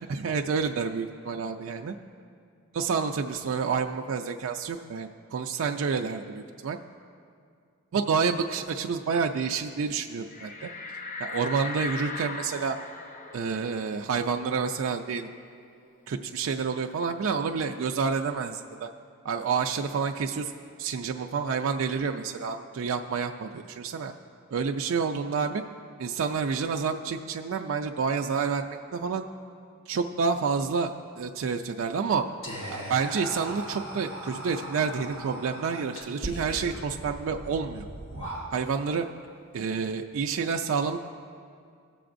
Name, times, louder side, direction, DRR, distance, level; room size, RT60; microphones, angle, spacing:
voice 1, 0.1-1.9 2.7-6.8 7.9-10.7 11.2-12.8 13.3-15.3 16.1-18.9 19.2-20.5 20.8-24.1 24.5-25.6 26.0-29.2 29.9-32.3 32.7-37.8 38.5-39.1 39.5-41.0, right 5 dB, 60° right, 3 dB, 0.3 m, -29 dB
sound 1, 10.3-15.5 15.8-15.9 16.3-17.9, left 3 dB, 35° left, 0.7 m, -39 dB
Whispering, 32.4-38.9, right 1 dB, 60° left, 1.3 m, -39 dB
18.5 x 6.9 x 2.5 m, 2.3 s
head